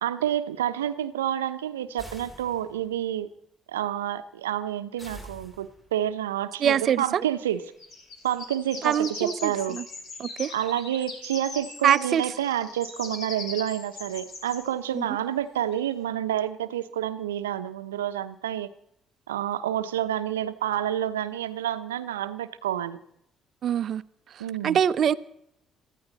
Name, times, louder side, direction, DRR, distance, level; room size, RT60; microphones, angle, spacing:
voice 1, 0.0-3.3 3.7-7.6 8.2-9.8 10.5-18.7 19.3-23.0 24.4-24.8, right 11 dB, 85° right, 0.9 m, -29 dB
sound 1, 2.0-3.0 5.0-6.1, right 1 dB, 25° left, 5.7 m, -45 dB
voice 2, 6.6-7.2 8.8-9.8 10.2-10.5 11.8-12.2 14.9-15.1 23.6-24.0 24.4-25.1, right 9 dB, 55° right, 0.7 m, -24 dB
sound 2, 6.9-7.0 7.5-14.7 15.7-15.9, left 3 dB, 55° left, 3.9 m, -40 dB
23.0 x 15.0 x 4.2 m
hypercardioid pair, 50°, 0 cm